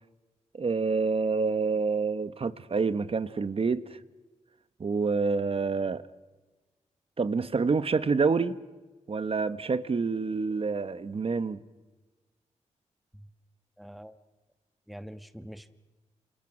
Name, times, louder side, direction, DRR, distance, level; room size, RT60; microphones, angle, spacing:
voice 1, 0.5-3.8 4.8-6.0 7.2-8.6 9.1-11.6, right 4 dB, 45° right, 1.2 m, -27 dB
voice 2, 13.8-14.2 14.9-15.7, equal, ahead, 1.3 m, -44 dB
29.0 x 28.0 x 6.2 m
cardioid pair, 80°, 13 cm